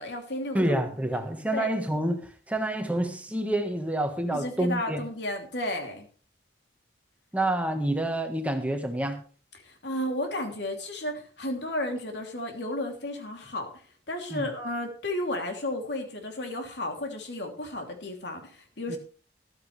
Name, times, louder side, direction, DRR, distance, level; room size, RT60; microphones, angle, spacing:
voice 1, 0.0-0.6 1.5-1.7 4.3-6.1 9.5-13.7 14.1-19.0, left 1 dB, 80° left, 3 dB, 3.0 m, -33 dB
voice 2, 0.5-5.0 7.3-9.2 14.3-14.5 18.9-19.0, right 1 dB, 10° right, 5 dB, 1.4 m, -28 dB
14.0 x 12.5 x 3.3 m, 0.39 s
head